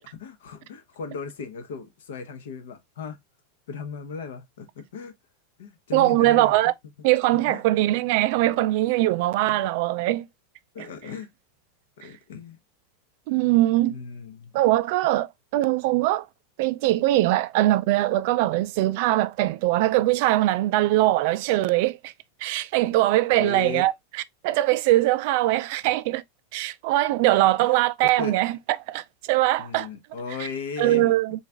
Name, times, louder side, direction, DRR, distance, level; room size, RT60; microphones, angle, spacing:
voice 1, 0.0-3.2 3.7-5.1 5.6-6.6 7.3-7.7 8.4-8.5 9.5-9.6 10.7-11.3 12.0-12.6 13.3-13.5 13.9-14.5 23.3-23.9 27.6-28.4 29.6-31.1, left 5 dB, 75° left, 0.8 m, -36 dB
voice 2, 5.9-6.7 7.0-10.2 13.3-14.0 14.5-15.3 15.5-16.3 16.6-22.1 22.4-23.9 24.4-26.2 26.5-28.5 28.9-29.9 30.8-31.4, right 16 dB, 45° right, 0.3 m, -21 dB
3.9 x 2.4 x 3.3 m
supercardioid pair, 175°, 0 cm